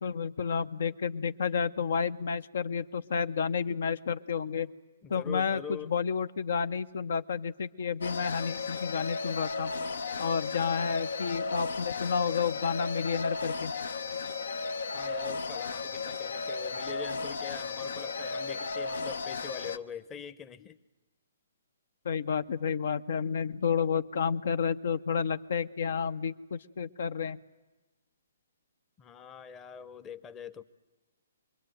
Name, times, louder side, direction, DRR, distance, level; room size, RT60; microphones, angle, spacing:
voice 1, 0.0-4.7 5.1-9.7 10.2-13.7 22.0-27.4, left 6 dB, 65° left, 14 dB, 0.8 m, -30 dB
voice 2, 5.0-5.9 14.9-20.8 29.0-30.6, left 7 dB, 15° left, 10 dB, 0.8 m, -43 dB
sound 1, 8.0-19.8, left 4 dB, 80° left, 1.1 m, -35 dB
26.0 x 22.0 x 9.2 m, 1.2 s
hypercardioid pair, 155°, 0 cm